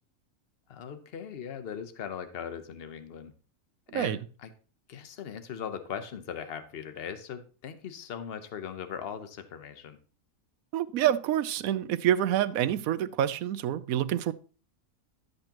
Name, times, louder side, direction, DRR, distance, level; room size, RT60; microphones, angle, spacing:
voice 1, 0.7-3.3 3.9-4.5 4.9-10.0, left 8 dB, 50° left, 1.0 m, -39 dB
voice 2, 10.7-14.3, right 11 dB, 75° right, 1.0 m, -27 dB
12.5 x 7.8 x 2.9 m
omnidirectional pair, 1.5 m